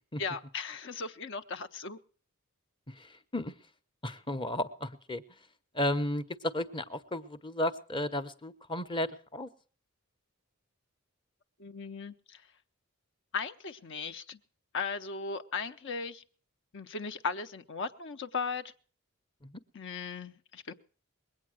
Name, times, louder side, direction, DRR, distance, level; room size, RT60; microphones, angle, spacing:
voice 1, 0.2-2.0 11.6-12.4 13.3-14.4 14.7-16.2 16.7-18.6 19.7-20.7, left 5 dB, 60° left, 8 dB, 0.8 m, -37 dB
voice 2, 4.0-5.2 5.7-9.5 19.4-19.5, left 1 dB, 25° left, 10 dB, 0.8 m, -33 dB
21.5 x 8.6 x 6.2 m, 0.43 s
head